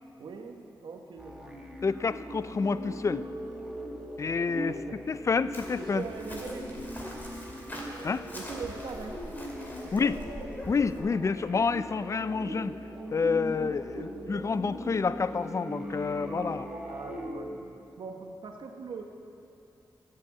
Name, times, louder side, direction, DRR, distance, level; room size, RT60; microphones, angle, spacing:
voice 1, 0.2-1.6 4.2-4.4 4.7-5.2 5.8-6.8 8.3-9.4 9.8-10.2 13.9-14.1 16.7-19.0, right 4 dB, 85° right, 3 dB, 1.1 m, -42 dB
sound 1, 1.2-17.3, left 1 dB, 5° right, 1.5 m, -50 dB
sound 2, 1.4-17.4, equal, 50° right, 3.2 m, -40 dB
voice 2, 1.8-3.2 4.2-4.7 5.1-6.0 8.0-8.2 9.9-10.2 10.7-12.7 13.1-16.7, left 5 dB, 40° left, 15 dB, 0.4 m, -28 dB
Chirp tweet, 5.5-11.0, left 1 dB, 25° left, 2.3 m, -43 dB
12.5 x 7.5 x 8.4 m, 2.6 s
wide cardioid pair, 95°, 8 cm